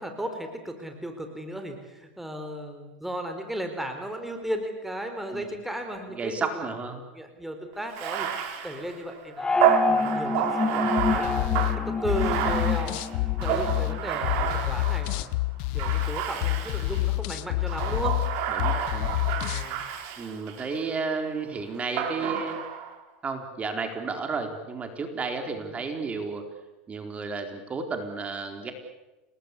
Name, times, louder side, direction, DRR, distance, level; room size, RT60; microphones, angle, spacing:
voice 1, 0.0-6.6 7.1-9.5 9.9-11.5 11.9-15.4 15.7-18.1 19.3-19.8 25.6-25.7, right 1 dB, 5° right, 5 dB, 4.0 m, -35 dB
voice 2, 6.1-7.0 18.5-19.1 20.2-22.6 23.2-26.4 26.9-28.7, right 4 dB, 20° right, 6 dB, 4.2 m, -32 dB
Bathtub (filling or washing), 7.9-15.2 15.8-17.1 17.6-20.8 22.0-22.9, right 10 dB, 55° right, 5.4 m, -30 dB
sound 1, 9.4-14.0, left 4 dB, 15° left, 1.9 m, -28 dB
sound 2, 11.0-19.7, left 20 dB, 60° left, 1.1 m, -28 dB
29.0 x 20.5 x 8.4 m, 1.1 s
supercardioid pair, 115°, 6 cm